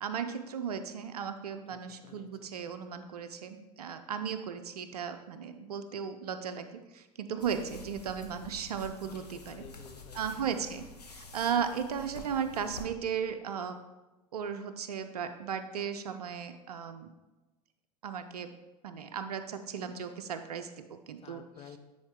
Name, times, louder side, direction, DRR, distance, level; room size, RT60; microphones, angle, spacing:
voice 1, 0.0-9.6 10.1-13.8 14.3-17.1 18.0-18.5 18.8-21.4, right 7 dB, 75° right, 8 dB, 0.5 m, -36 dB
voice 2, 1.7-2.7 9.0-10.5 21.2-21.8, left 7 dB, 30° left, 7 dB, 0.7 m, -53 dB
sound 1, 7.4-12.9, left 2 dB, 85° left, 0.8 m, -49 dB
9.6 x 3.9 x 3.6 m, 1.1 s
figure-of-eight pair, 80°, 20 cm